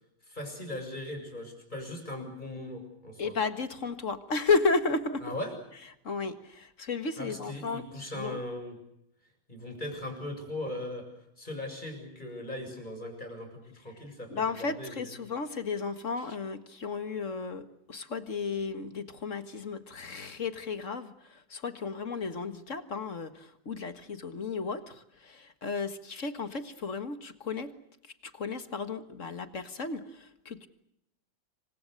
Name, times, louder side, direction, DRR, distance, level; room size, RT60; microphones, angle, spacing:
voice 1, 0.2-3.4 5.2-5.6 7.2-8.8 9.5-15.1, left 1 dB, 25° left, 4 dB, 7.0 m, -39 dB
voice 2, 3.2-5.3 6.0-8.4 14.3-27.7 28.0-30.7, left 4 dB, 45° left, 10 dB, 2.0 m, -33 dB
28.0 x 25.0 x 6.6 m, 0.79 s
omnidirectional pair, 1.8 m